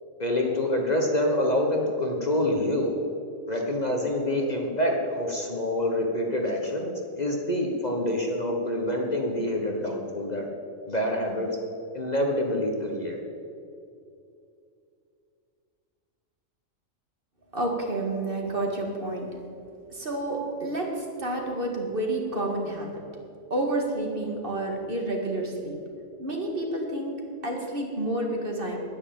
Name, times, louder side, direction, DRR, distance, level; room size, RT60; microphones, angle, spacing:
voice 1, 0.2-2.9 3.5-10.5 10.9-11.6 11.9-13.2, left 1 dB, 35° left, 1 dB, 1.3 m, -26 dB
voice 2, 17.5-19.4 19.9-22.9 23.5-25.8 26.2-28.8, right 1 dB, 45° right, 1 dB, 2.1 m, -29 dB
10.0 x 9.9 x 8.8 m, 2.5 s
omnidirectional pair, 1.4 m